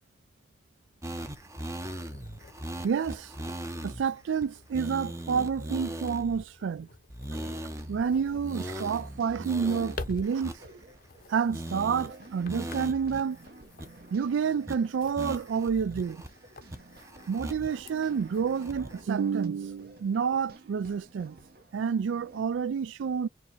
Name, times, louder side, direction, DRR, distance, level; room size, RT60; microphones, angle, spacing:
sound 1, 1.0-4.0 4.4-4.5 4.7-6.4 7.1-8.0 8.4-11.2 11.5-12.1 12.5-13.2 13.5-13.6 13.8-14.3 14.7-14.8 15.2-16.3 16.7-17.8 18.2-19.0, right 1 dB, 15° right, 0.6 m, -39 dB
sound 2, 1.3-20.4, left 3 dB, 50° left, 0.6 m, -50 dB
voice 1, 2.8-3.3 3.8-6.9 7.9-10.5 11.3-13.4 14.1-16.2 17.3-21.4 21.7-23.3, right 6 dB, 85° right, 0.3 m, -29 dB
sound 3, 7.3-22.4, right 2 dB, 55° right, 0.9 m, -52 dB
4.3 x 2.8 x 3.0 m
head